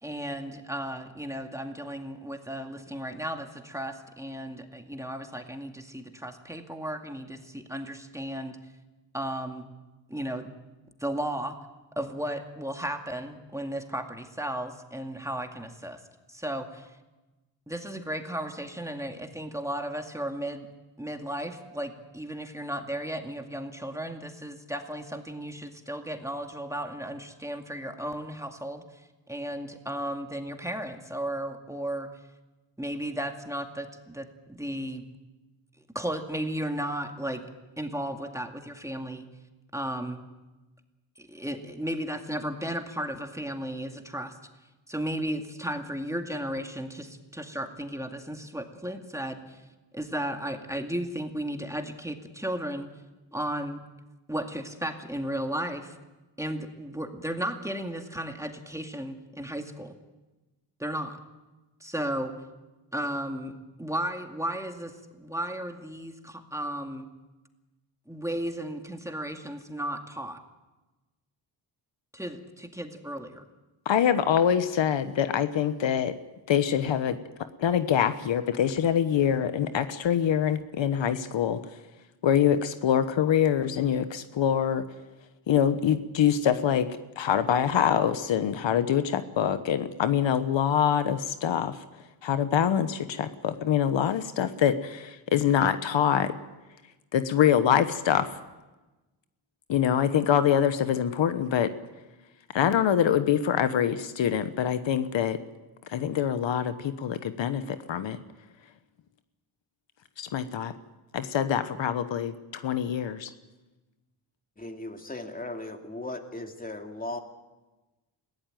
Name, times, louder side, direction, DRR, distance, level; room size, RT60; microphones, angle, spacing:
voice 1, 0.0-8.6 9.1-9.7 10.1-10.5 11.0-11.6 12.0-16.0 16.3-16.9 17.7-20.7 21.0-28.8 29.3-32.1 32.8-35.0 35.9-37.4 37.8-39.3 39.7-40.2 41.2-44.3 44.9-49.6 49.9-52.9 53.3-53.8 54.3-55.9 56.4-59.9 60.8-61.2 61.8-62.3 62.9-67.1 68.1-70.4 72.1-73.4, right 1 dB, 5° right, 4 dB, 2.2 m, -34 dB
voice 2, 73.8-76.1 76.5-77.2 77.6-81.6 82.2-84.8 85.5-86.9 87.2-91.8 92.2-96.3 97.1-98.3 99.7-101.7 102.5-105.4 105.9-108.2 110.2-110.7 111.1-113.3, left 9 dB, 70° left, 11 dB, 1.1 m, -25 dB
voice 3, 114.6-117.2, left 2 dB, 20° left, 4 dB, 2.6 m, -37 dB
21.0 x 16.0 x 9.1 m, 1.1 s
cardioid pair, 75°, 46 cm